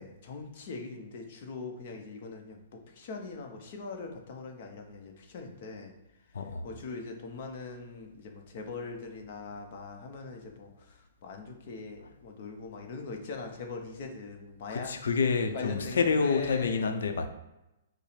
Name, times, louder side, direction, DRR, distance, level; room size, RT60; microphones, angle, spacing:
voice 1, 0.0-5.9 6.6-14.9 15.5-16.8, left 3 dB, 40° left, 0.6 m, -41 dB
voice 2, 6.3-6.7 14.7-17.3, left 5 dB, 85° left, 0.5 m, -28 dB
5.4 x 2.0 x 4.8 m
hypercardioid pair, 175°, 0 cm